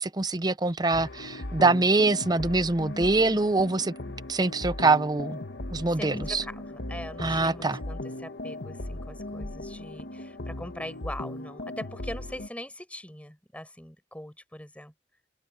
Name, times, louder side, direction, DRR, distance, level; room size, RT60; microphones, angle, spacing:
voice 1, 0.0-3.9 4.3-5.4 5.7-6.4 7.2-7.8, right 3 dB, 25° right, 0.7 m, -24 dB
sound 1, 0.9-12.5, left 1 dB, 75° left, 1.6 m, -38 dB
voice 2, 6.0-14.9, left 1 dB, 10° left, 5.2 m, -41 dB
head